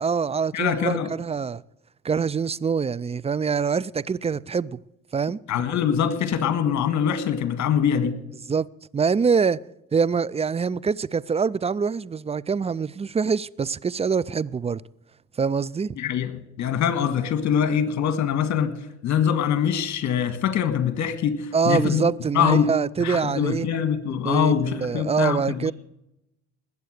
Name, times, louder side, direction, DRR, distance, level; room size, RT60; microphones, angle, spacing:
voice 1, 0.0-1.6 2.0-4.8 5.1-5.4 8.5-8.7 8.9-9.6 9.9-14.8 15.4-16.0 21.5-23.7 24.1-25.7, right 5 dB, 20° right, 0.4 m, -24 dB
voice 2, 0.5-1.1 5.5-8.1 16.0-16.3 16.6-18.8 19.0-22.0 22.3-22.7 23.0-25.7, left 8 dB, 55° left, 2.0 m, -23 dB
20.0 x 8.1 x 6.6 m
supercardioid pair, 70°, 34 cm